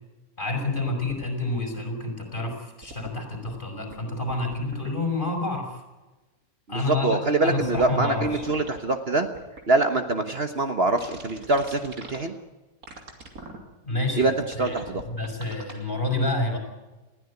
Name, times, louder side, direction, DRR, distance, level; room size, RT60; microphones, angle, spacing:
voice 1, 0.4-5.8 6.7-8.4 13.8-16.6, left 2 dB, 35° left, 3 dB, 5.3 m, -29 dB
sound 1, 0.9-1.3 2.8-3.5 3.9-4.0 4.3-4.9 7.6-7.9 8.2-8.7 9.4-9.8 11.0-12.2 12.8-13.6 14.2-14.3 14.5-15.7, right 2 dB, 80° right, 3.3 m, -42 dB
voice 2, 6.7-9.3 9.7-12.4 14.2-14.3 14.6-15.0, right 2 dB, 45° right, 7 dB, 1.5 m, -24 dB
20.5 x 15.0 x 9.6 m, 1.1 s
omnidirectional pair, 1.5 m